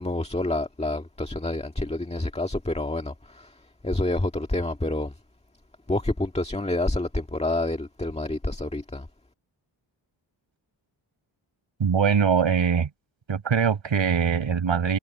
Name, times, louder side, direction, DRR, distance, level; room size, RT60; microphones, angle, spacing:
voice 1, 0.0-3.6 3.8-5.1 5.9-9.1, left 2 dB, 15° left, 1.9 m, -28 dB
voice 2, 11.8-12.9 13.3-15.0, right 7 dB, 70° right, 6.2 m, -22 dB
cardioid pair, 80°, 47 cm